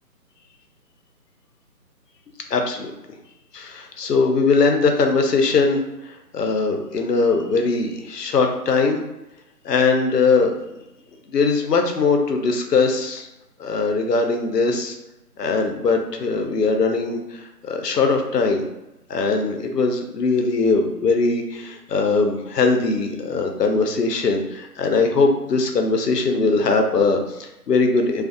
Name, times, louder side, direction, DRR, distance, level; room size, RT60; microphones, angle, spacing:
voice 1, 2.5-2.9 3.5-5.8 6.3-9.0 9.6-10.5 11.3-13.3 13.6-14.9 15.4-17.2 17.6-18.6 19.1-28.2, left 4 dB, 80° left, 4 dB, 0.7 m, -20 dB
2.4 x 2.2 x 2.5 m, 0.93 s
figure-of-eight pair, 170°, 48 cm